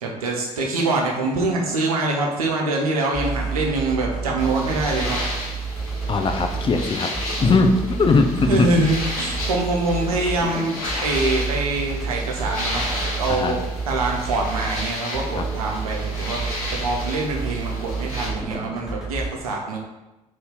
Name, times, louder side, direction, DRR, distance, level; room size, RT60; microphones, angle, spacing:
voice 1, 0.0-5.2 8.5-10.7 11.0-12.8 13.1-13.6 13.9-16.4 16.7-19.8, right 2 dB, 80° right, 0 dB, 0.5 m, -24 dB
sound 1, 3.1-19.3, right 4 dB, ahead, 1.1 m, -30 dB
sound 2, 4.4-18.3, left 1 dB, 80° left, 0.8 m, -33 dB
voice 2, 6.1-7.1 7.4-8.7 13.3-13.5 15.3-15.4, left 3 dB, 30° left, 5 dB, 0.4 m, -19 dB
2.7 x 2.6 x 3.5 m, 1.0 s
figure-of-eight pair, 45°, 18 cm